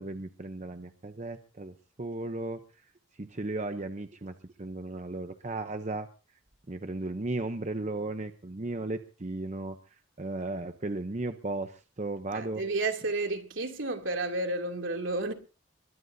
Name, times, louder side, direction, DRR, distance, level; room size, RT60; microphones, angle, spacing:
voice 1, 0.0-2.6 3.2-6.1 6.7-9.8 10.2-12.6, right 2 dB, 35° right, 0.8 m, -35 dB
voice 2, 12.3-15.3, right 2 dB, 75° right, 2.8 m, -31 dB
22.5 x 17.5 x 2.7 m
head